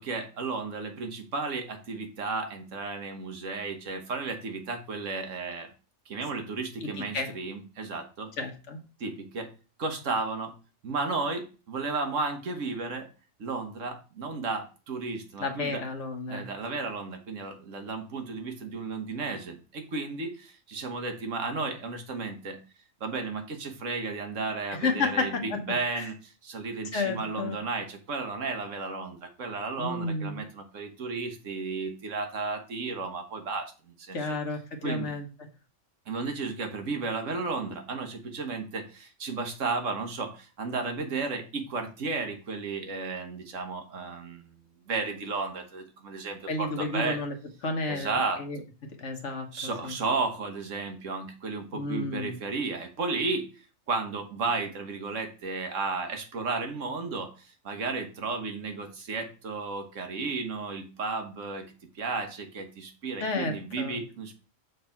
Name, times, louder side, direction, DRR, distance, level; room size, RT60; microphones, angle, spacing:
voice 1, 0.0-5.7 6.1-8.3 9.0-9.5 9.8-10.5 10.8-13.0 13.4-15.8 16.3-20.3 20.7-22.6 23.0-26.1 26.5-33.6 34.1-34.2 34.8-35.1 36.1-38.8 39.2-40.3 40.6-44.4 44.9-47.2 47.9-48.4 49.5-53.4 53.9-57.3 57.7-61.6 62.0-64.4, right 4 dB, 80° right, 5 dB, 1.5 m, -33 dB
voice 2, 6.8-7.3 8.4-8.8 15.4-16.5 24.7-25.6 25.9-26.1 26.9-27.6 29.8-30.4 34.1-35.3 46.5-47.3 47.6-48.6 49.0-49.9 51.7-52.4 63.2-64.0, left 3 dB, 70° left, 4 dB, 1.5 m, -31 dB
6.5 x 3.4 x 5.7 m, 0.35 s
omnidirectional pair, 1.3 m